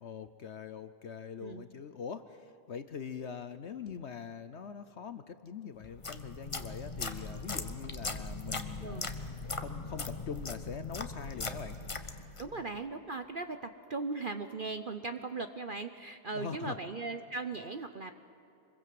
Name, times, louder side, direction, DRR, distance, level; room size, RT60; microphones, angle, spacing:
voice 1, 0.0-9.1 9.5-11.8 12.5-12.6 16.3-16.8, left 7 dB, 55° left, 11 dB, 0.9 m, -43 dB
sound 1, 5.8-12.5, left 3 dB, 25° left, 0.9 m, -39 dB
voice 2, 12.4-18.1, right 3 dB, 45° right, 8 dB, 0.7 m, -38 dB
25.0 x 22.0 x 7.7 m, 2.8 s
omnidirectional pair, 1.7 m